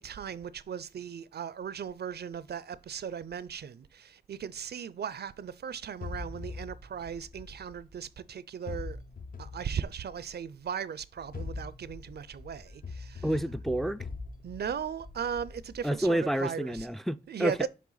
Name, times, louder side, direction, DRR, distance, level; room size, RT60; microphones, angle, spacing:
voice 1, 0.0-9.0 9.4-13.3 14.4-16.9 17.3-17.7, right 7 dB, 75° right, 0.5 m, -37 dB
sound 1, 6.0-8.1 8.7-10.5 11.2-16.2, left 4 dB, 55° left, 0.7 m, -43 dB
voice 2, 13.2-14.1 15.8-17.7, right 1 dB, ahead, 0.3 m, -29 dB
7.6 x 3.3 x 3.9 m
wide cardioid pair, 90°, 17 cm